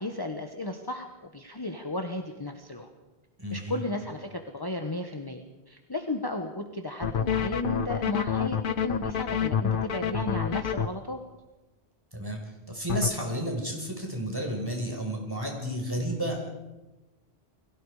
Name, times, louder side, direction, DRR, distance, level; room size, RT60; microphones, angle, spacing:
voice 1, 0.0-2.9 3.5-11.2, left 2 dB, 20° left, 4 dB, 1.4 m, -34 dB
voice 2, 3.4-3.8 12.1-12.4 12.7-16.5, equal, 20° right, 1 dB, 5.4 m, -31 dB
sound 1, 7.0-10.9 12.9-13.1, left 7 dB, 55° left, 1.0 m, -27 dB
29.5 x 22.0 x 5.0 m, 1.1 s
omnidirectional pair, 1.1 m